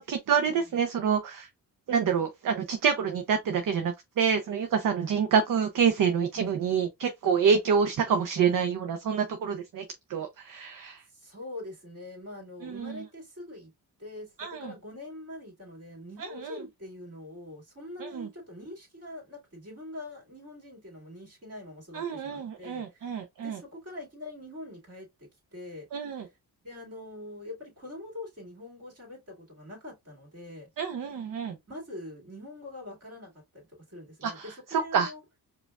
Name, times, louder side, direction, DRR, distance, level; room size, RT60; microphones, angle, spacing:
voice 1, 0.0-1.5 1.9-11.0 12.6-13.0 14.4-14.7 16.2-16.6 18.0-18.3 21.9-23.6 25.9-26.3 30.8-31.6 34.2-35.1, right 6 dB, 55° right, 0.6 m, -27 dB
voice 2, 11.1-13.7 14.0-25.1 25.5-25.9 26.2-26.3 26.6-30.7 31.7-35.2, left 1 dB, 40° right, 2.1 m, -44 dB
4.8 x 2.3 x 2.3 m
cardioid pair, 90°, 39 cm